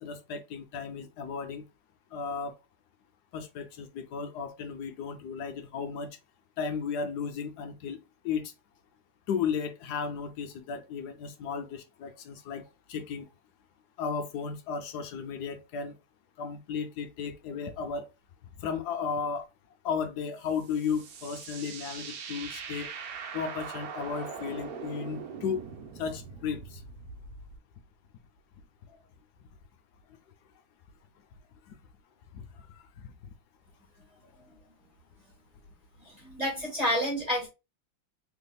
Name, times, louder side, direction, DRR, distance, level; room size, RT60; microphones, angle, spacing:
voice 1, 0.0-1.6 2.1-2.6 3.3-6.2 6.6-8.5 9.3-12.6 12.9-13.3 14.0-15.9 16.4-18.1 18.6-19.5 19.8-22.9 23.3-25.6 26.0-26.8 31.7-31.8 32.3-33.1, left 6 dB, 75° left, 0.9 m, -34 dB
sound 1, 20.4-27.6, right 6 dB, 65° right, 0.9 m, -42 dB
voice 2, 36.2-37.5, equal, 20° right, 1.5 m, -29 dB
3.5 x 3.3 x 2.2 m
omnidirectional pair, 2.2 m